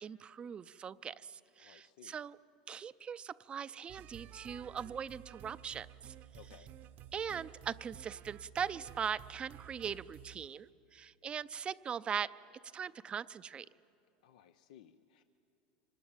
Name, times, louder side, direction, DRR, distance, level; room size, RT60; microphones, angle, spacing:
voice 1, 0.0-2.4 2.7-6.1 7.1-12.3 12.7-13.7, right 7 dB, 25° right, 15 dB, 0.5 m, -40 dB
voice 2, 1.6-2.2 6.3-6.7 14.2-15.2, left 11 dB, 80° left, 9 dB, 0.8 m, -59 dB
sound 1, 3.9-10.5, right 11 dB, 45° right, 0.9 m, -53 dB
25.0 x 19.5 x 8.9 m, 2.7 s
supercardioid pair, 120°, 4 cm